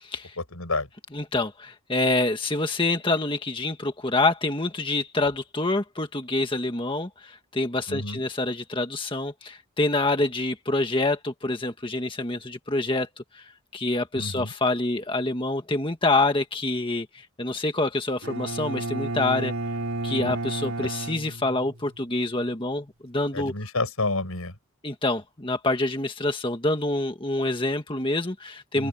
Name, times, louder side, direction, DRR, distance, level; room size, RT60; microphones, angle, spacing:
voice 1, 0.4-0.9 7.9-8.2 14.2-14.5 20.2-20.4 23.3-24.5 28.7-28.9, left 2 dB, 85° left, 6.2 m, -29 dB
voice 2, 1.1-13.4 13.7-17.1 17.4-19.5 20.0-23.5 24.8-28.9, left 2 dB, 25° left, 1.7 m, -26 dB
Bowed string instrument, 18.2-22.1, right 2 dB, 70° right, 4.2 m, -32 dB
open air
head